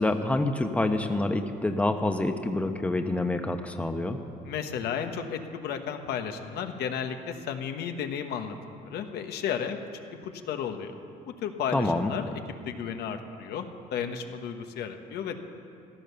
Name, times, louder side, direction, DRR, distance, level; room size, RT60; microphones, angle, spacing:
voice 1, 0.0-4.2 11.7-12.1, left 2 dB, 10° left, 6 dB, 1.0 m, -27 dB
voice 2, 4.4-9.8 10.1-10.9 11.3-12.4 12.7-15.4, left 7 dB, 75° left, 6 dB, 1.3 m, -33 dB
15.5 x 12.5 x 7.0 m, 2.5 s
cardioid pair, 110°, 17 cm